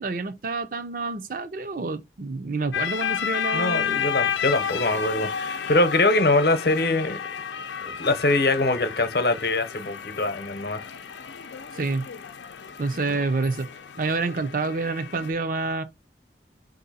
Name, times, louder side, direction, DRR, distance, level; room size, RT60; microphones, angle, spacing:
voice 1, 0.0-4.0 11.8-12.1 12.8-13.7 14.0-15.8, right 3 dB, 50° right, 0.6 m, -28 dB
sound 1, 2.7-15.3, left 8 dB, 85° left, 0.6 m, -32 dB
voice 2, 3.5-7.2 7.8-10.8 13.1-13.2, left 2 dB, 60° left, 0.8 m, -23 dB
4.5 x 2.7 x 4.1 m
head